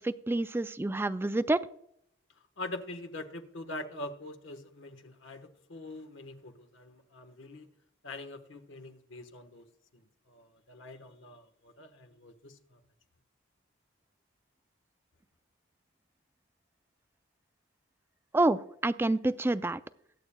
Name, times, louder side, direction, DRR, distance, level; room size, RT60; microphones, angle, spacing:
voice 1, 0.0-1.6 18.3-19.8, right 2 dB, 10° right, 13 dB, 0.3 m, -28 dB
voice 2, 2.6-7.7 8.0-9.7 9.9-12.8, left 2 dB, 65° left, 8 dB, 1.2 m, -44 dB
23.0 x 8.5 x 2.2 m, 0.73 s
head